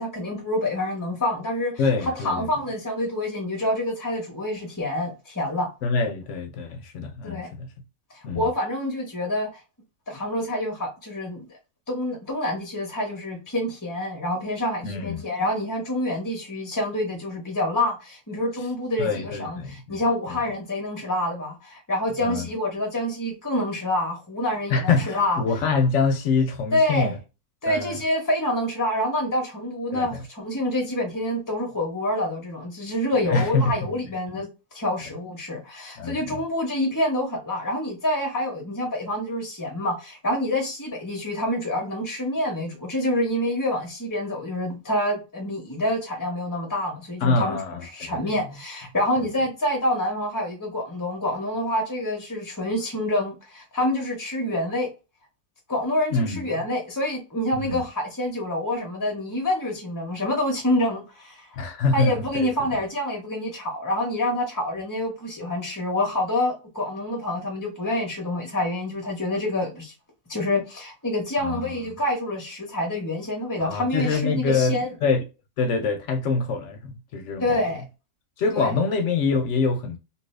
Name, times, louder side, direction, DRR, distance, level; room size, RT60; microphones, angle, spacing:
voice 1, 0.0-1.8 2.2-5.7 7.2-7.5 8.1-9.6 10.1-11.5 11.9-25.4 26.7-27.1 27.6-34.5 34.7-54.9 55.7-61.5 61.9-69.9 70.3-74.9 77.4-77.8 78.5-78.7, left 1 dB, 25° left, 0.4 m, -27 dB
voice 2, 1.8-2.5 5.8-7.7 8.2-8.5 14.8-15.2 19.0-20.0 20.3-20.4 22.2-22.5 24.7-27.2 27.7-28.0 29.9-30.2 33.2-33.9 34.3-34.4 36.0-36.5 47.2-48.2 48.4-48.6 56.1-56.4 57.5-57.8 61.6-62.5 71.4-71.7 73.6-75.2 75.6-77.6 78.4-80.0, left 4 dB, 65° left, 0.8 m, -25 dB
2.9 x 2.6 x 3.2 m
omnidirectional pair, 1.6 m